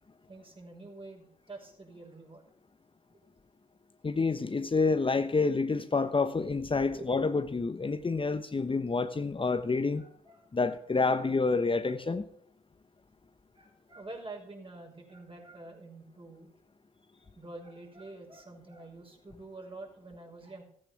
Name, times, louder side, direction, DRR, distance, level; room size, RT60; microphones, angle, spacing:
voice 1, 0.3-2.5 6.9-7.1 10.0-10.8 11.8-11.9 13.5-16.5 17.2-20.6, right 2 dB, 30° right, 1 dB, 5.8 m, -47 dB
voice 2, 4.0-10.0 10.5-12.2, left 4 dB, 30° left, 9 dB, 1.0 m, -28 dB
14.5 x 8.8 x 7.1 m, 0.65 s
supercardioid pair, 45°, 17 cm